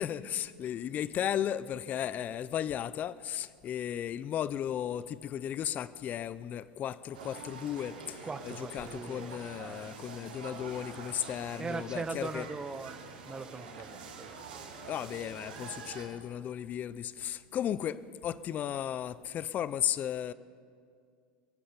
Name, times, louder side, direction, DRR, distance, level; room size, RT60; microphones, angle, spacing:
voice 1, 0.0-12.5 14.9-20.3, left 10 dB, 35° left, 0.4 m, -35 dB
sound 1, 7.1-16.1, right 4 dB, 85° right, 3.3 m, -46 dB
voice 2, 8.2-10.0 11.6-14.3, right 4 dB, 15° right, 0.8 m, -40 dB
23.0 x 7.8 x 6.8 m
supercardioid pair, 115°, 5 cm